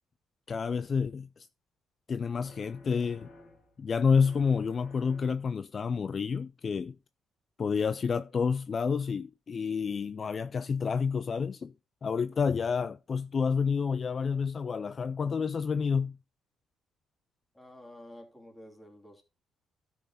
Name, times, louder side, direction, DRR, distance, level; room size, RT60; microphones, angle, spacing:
voice 1, 0.5-1.5 2.1-3.3 3.8-6.9 7.6-11.7 12.0-16.2, left 5 dB, 45° left, 0.4 m, -29 dB
sound 1, 2.4-3.8 4.1-5.6, left 2 dB, 65° left, 2.9 m, -54 dB
voice 2, 17.5-19.2, left 1 dB, 15° left, 3.2 m, -50 dB
12.5 x 5.8 x 4.1 m
cardioid pair, 90°, 0 cm